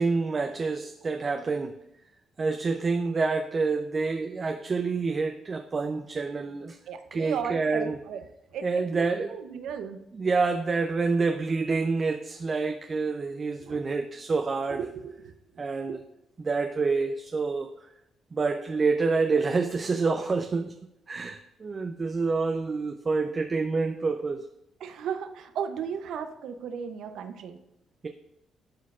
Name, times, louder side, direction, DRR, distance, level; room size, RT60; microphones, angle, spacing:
voice 1, 0.0-1.8 2.4-6.8 7.1-8.0 8.6-9.4 10.1-14.9 15.6-16.0 16.4-17.7 18.3-20.7 21.1-24.4, right 4 dB, 35° right, 5 dB, 0.5 m, -27 dB
voice 2, 6.9-8.2 8.5-10.0 13.6-13.8 14.8-15.3 15.9-16.0 24.8-27.6, right 7 dB, 75° right, 8 dB, 0.6 m, -35 dB
11.5 x 4.5 x 2.4 m, 0.86 s
cardioid pair, 90°, 0 cm